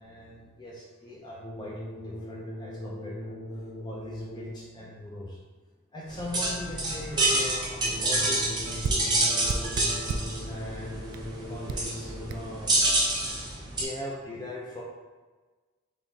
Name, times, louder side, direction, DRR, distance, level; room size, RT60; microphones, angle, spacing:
voice 1, 0.0-3.4 3.8-5.4 5.9-8.5 8.8-9.9 10.4-11.0 11.5-12.7 13.7-14.8, left 1 dB, 20° left, -4 dB, 0.5 m, -41 dB
sound 1, 1.4-4.8 7.8-12.8, left 1 dB, 65° left, 1.2 m, -39 dB
sound 2, 6.1-13.8, right 2 dB, 20° right, 0.8 m, -28 dB
sound 3, 7.0-7.1 7.5-7.6 7.9-8.0 8.8-10.4 11.1-11.3 11.7-11.9 12.3-12.4, right 4 dB, 85° right, 0.3 m, -34 dB
4.0 x 3.5 x 3.5 m, 1.3 s
head